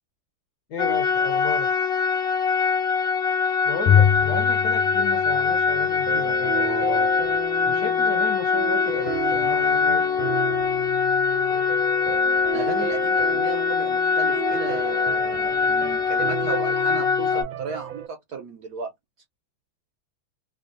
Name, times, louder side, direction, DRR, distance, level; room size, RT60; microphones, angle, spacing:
voice 1, 0.7-1.7 3.6-7.1 7.6-10.1, left 3 dB, 60° left, 1.2 m, -33 dB
sound 1, 0.8-17.4, left 5 dB, 25° left, 0.7 m, -23 dB
Bowed string instrument, 3.9-6.3, left 9 dB, 75° left, 1.3 m, -23 dB
sound 2, 6.1-18.1, right 11 dB, 85° right, 1.5 m, -34 dB
voice 2, 12.5-18.9, right 5 dB, 65° right, 1.0 m, -35 dB
3.4 x 2.3 x 2.5 m
omnidirectional pair, 2.3 m